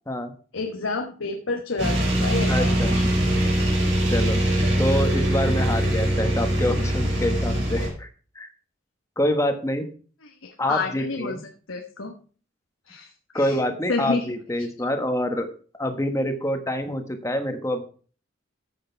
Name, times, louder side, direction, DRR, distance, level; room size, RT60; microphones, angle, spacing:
voice 1, 0.5-3.4 3.8-3.9 10.2-11.4 11.7-12.1 12.9-13.6 13.9-14.3, left 3 dB, 80° left, 3 dB, 1.2 m, -30 dB
sound 1, 1.8-7.9, equal, 60° right, 5.7 m, -22 dB
voice 2, 2.5-2.9 4.1-4.4 4.8-8.1 8.3-8.5 9.2-9.9 10.6-11.4 13.3-15.5 15.7-17.8, left 1 dB, 15° left, 6 dB, 1.4 m, -26 dB
14.0 x 6.5 x 4.6 m, 0.41 s
head